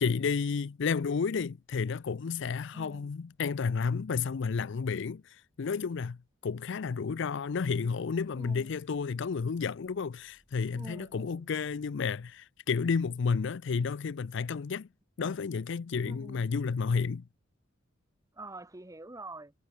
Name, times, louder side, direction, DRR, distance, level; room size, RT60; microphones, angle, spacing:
voice 1, 0.0-14.9 15.2-17.2, left 5 dB, 65° left, 0.5 m, -31 dB
voice 2, 2.7-3.1 8.3-8.7 10.7-11.8 16.0-16.5 18.3-19.5, right 2 dB, 15° right, 1.2 m, -46 dB
sound 1, 7.1-12.3, equal, 40° right, 6.6 m, -72 dB
head